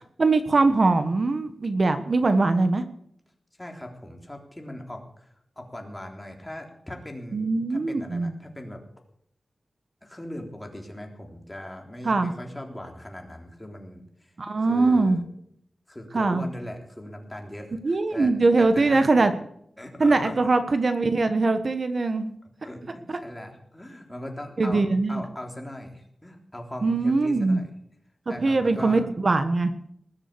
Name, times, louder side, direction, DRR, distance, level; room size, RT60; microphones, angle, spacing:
voice 1, 0.2-2.8 7.3-8.3 12.0-12.3 14.4-15.2 16.1-16.5 17.8-19.3 20.0-22.3 24.6-25.2 26.8-27.6 28.4-29.7, right 3 dB, 50° right, 9 dB, 1.3 m, -22 dB
voice 2, 3.6-8.8 10.0-14.3 14.7-15.2 15.9-19.2 19.8-20.4 20.9-21.0 22.6-24.8 25.1-27.7 28.3-29.1, left 1 dB, 15° left, 2 dB, 3.5 m, -39 dB
20.0 x 7.5 x 8.4 m, 0.69 s
wide cardioid pair, 110°, 0 cm